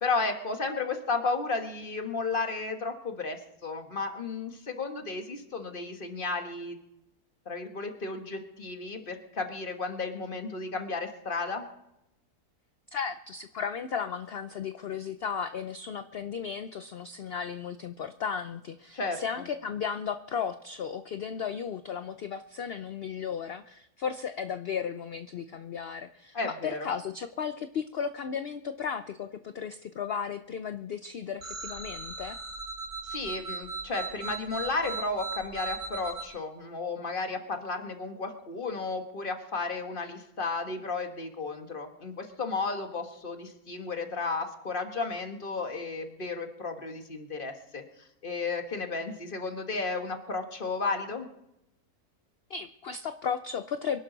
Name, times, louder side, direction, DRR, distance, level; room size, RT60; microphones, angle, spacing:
voice 1, 0.0-6.8 7.4-11.7 18.9-19.2 26.3-26.9 33.0-51.3, left 3 dB, 35° left, 5 dB, 1.6 m, -33 dB
voice 2, 12.9-32.4 52.5-54.0, left 7 dB, 60° left, 10 dB, 0.6 m, -35 dB
sound 1, 31.4-36.2, right 4 dB, 85° right, 4.4 m, -37 dB
24.5 x 11.5 x 4.0 m, 0.86 s
omnidirectional pair, 1.6 m